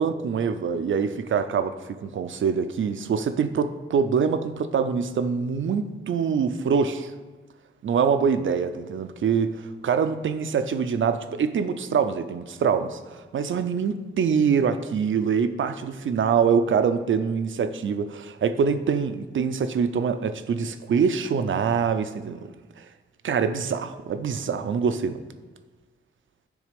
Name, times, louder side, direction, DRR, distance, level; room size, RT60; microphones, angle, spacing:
voice 1, 0.0-7.1 7.8-22.5 22.8-22.9 23.2-25.2, right 6 dB, 65° right, 10 dB, 0.6 m, -24 dB
9.5 x 3.6 x 5.2 m, 1.3 s
cardioid pair, 80°, 21 cm